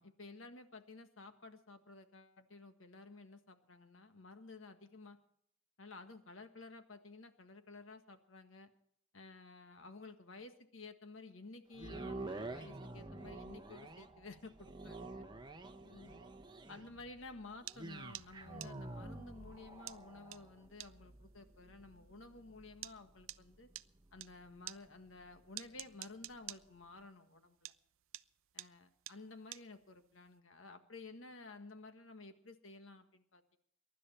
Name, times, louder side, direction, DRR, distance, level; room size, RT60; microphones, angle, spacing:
voice 1, 0.0-5.2 5.8-8.7 9.1-15.3 15.8-16.3 16.7-23.7 24.1-27.7 28.5-33.6, left 3 dB, 80° left, 8 dB, 1.6 m, -53 dB
sound 1, 11.7-25.9 26.5-26.6, right 2 dB, 20° right, 0.9 m, -49 dB
sound 2, 17.7-24.3 24.7-27.4 27.6-30.3, right 15 dB, 90° right, 0.5 m, -48 dB
23.0 x 11.5 x 4.4 m, 0.68 s
head